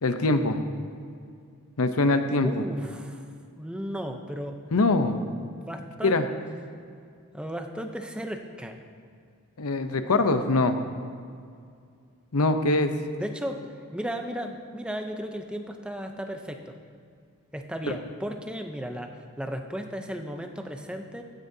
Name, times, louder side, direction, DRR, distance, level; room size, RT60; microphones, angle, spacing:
voice 1, 0.0-0.6 1.8-2.6 4.7-5.2 6.0-6.3 9.6-10.8 12.3-12.9, left 2 dB, 85° left, 8 dB, 0.7 m, -23 dB
voice 2, 2.4-3.3 3.5-4.6 5.6-6.2 7.3-8.8 13.2-13.6 13.9-16.8 17.5-21.2, equal, 5° right, 4 dB, 0.6 m, -35 dB
16.0 x 9.6 x 2.8 m, 2.3 s
head